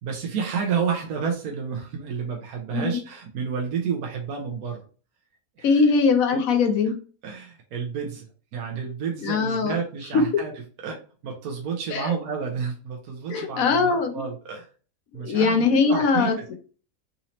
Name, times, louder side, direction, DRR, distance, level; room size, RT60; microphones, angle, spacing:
voice 1, 0.0-4.8 5.6-5.9 6.3-6.4 6.8-6.9 7.2-8.3 8.5-10.5 10.8-14.7 15.1-16.5, right 6 dB, 70° right, 1 dB, 1.2 m, -30 dB
voice 2, 5.6-7.0 9.2-9.8 10.1-10.2 11.9-12.1 13.3-14.2 15.2-16.5, left 5 dB, 65° left, 5 dB, 1.0 m, -21 dB
4.1 x 2.8 x 2.9 m, 0.38 s
omnidirectional pair, 1.7 m